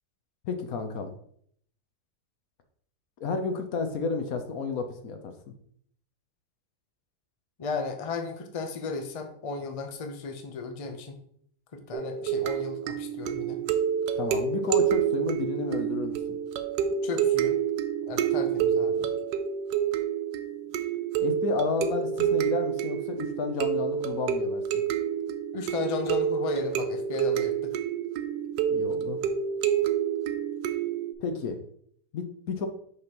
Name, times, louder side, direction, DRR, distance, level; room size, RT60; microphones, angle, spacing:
voice 1, 0.4-1.1 3.2-5.3 14.2-16.2 21.2-24.6 28.7-29.2 31.2-31.6 32.1-32.7, left 4 dB, 65° left, 6 dB, 1.1 m, -31 dB
voice 2, 7.6-11.2 11.7-13.6 17.0-17.5 18.1-19.1 25.5-27.8, left 4 dB, 40° left, 5 dB, 0.5 m, -34 dB
sound 1, 11.9-31.1, right 9 dB, 80° right, 1.2 m, -28 dB
6.5 x 5.6 x 3.0 m, 0.65 s
omnidirectional pair, 1.8 m